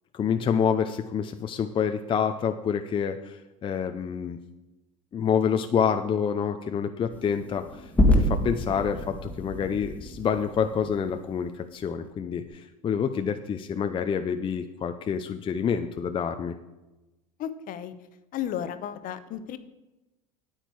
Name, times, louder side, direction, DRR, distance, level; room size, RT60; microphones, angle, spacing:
voice 1, 0.1-4.4 5.1-16.6, left 7 dB, 30° left, 7 dB, 0.6 m, -27 dB
sound 1, 7.1-11.5, left 1 dB, 10° left, 1.6 m, -27 dB
voice 2, 17.4-17.9 18.3-19.6, left 10 dB, 50° left, 12 dB, 0.9 m, -33 dB
9.1 x 9.0 x 4.7 m, 1.0 s
hypercardioid pair, 95°, 19 cm